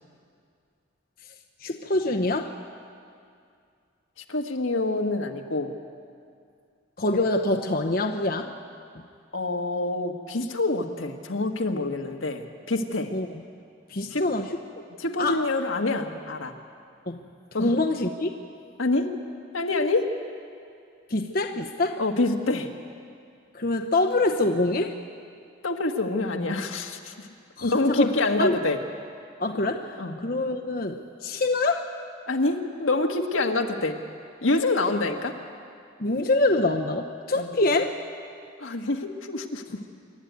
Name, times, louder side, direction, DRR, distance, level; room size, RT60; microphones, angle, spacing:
voice 1, 1.6-2.5 7.0-8.5 13.1-13.4 13.9-14.5 15.2-15.4 17.1-17.2 17.6-18.3 21.1-22.0 23.5-25.0 27.6-28.6 29.4-31.9 36.0-37.9, left 2 dB, 45° left, 3 dB, 0.9 m, -25 dB
voice 2, 4.3-5.7 9.3-13.1 14.1-14.2 15.0-16.5 17.5-17.7 18.8-19.1 19.5-20.1 22.0-22.7 25.6-27.3 27.6-28.8 30.0-30.1 32.3-34.0 34.4-35.3 37.3-37.5 38.6-39.6, left 2 dB, 85° left, 4 dB, 1.5 m, -26 dB
26.5 x 12.0 x 9.4 m, 2.4 s
head